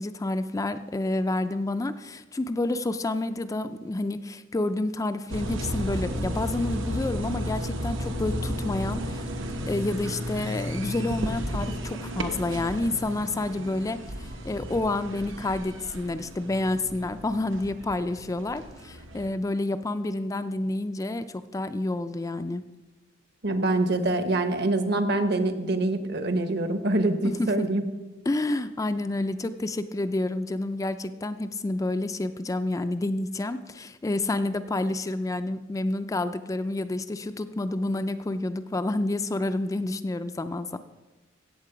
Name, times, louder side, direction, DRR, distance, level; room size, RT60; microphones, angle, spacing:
voice 1, 0.0-9.3 9.7-22.6 27.2-27.7 28.3-40.8, left 2 dB, 15° left, 10 dB, 0.3 m, -29 dB
sound 1, 5.3-19.3, equal, 85° right, 1.2 m, -33 dB
voice 2, 23.4-27.8, right 2 dB, 55° right, 8 dB, 1.1 m, -25 dB
16.0 x 7.4 x 4.9 m, 1.2 s
head